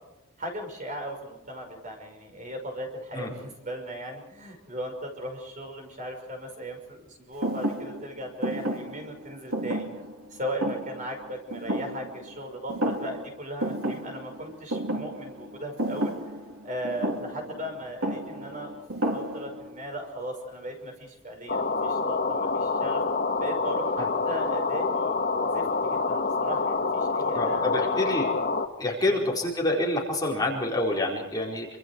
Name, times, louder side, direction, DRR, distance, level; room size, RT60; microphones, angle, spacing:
voice 1, 0.4-9.9 10.3-16.1 16.6-18.7 19.1-23.0 23.4-25.1 25.4-28.1 29.0-29.3, equal, 35° right, 3 dB, 5.7 m, -37 dB
Thump thud, 7.4-12.4 12.7-13.3 13.6-19.7, right 1 dB, 85° right, 3.6 m, -32 dB
sound 1, 21.5-28.7, left 4 dB, 45° left, 1.7 m, -27 dB
voice 2, 27.3-28.3 28.8-31.7, left 1 dB, 20° left, -2 dB, 4.5 m, -27 dB
27.0 x 25.5 x 4.7 m, 0.97 s
head